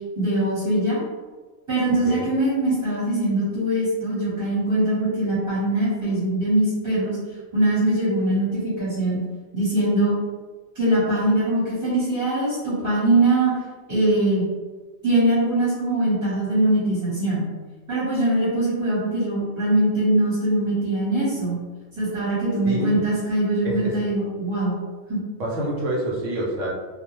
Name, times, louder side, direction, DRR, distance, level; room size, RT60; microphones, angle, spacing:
voice 1, 0.2-1.0 1.7-7.2 7.5-9.2 9.5-10.1 10.7-13.6 13.9-14.4 15.0-17.4 17.9-21.6 22.0-24.8 25.1-25.2, right 1 dB, 15° right, -11 dB, 1.0 m, -22 dB
voice 2, 22.6-23.1 23.6-24.0 25.4-26.7, right 1 dB, 70° right, -4 dB, 1.0 m, -27 dB
2.3 x 2.2 x 3.0 m, 1.4 s
omnidirectional pair, 1.4 m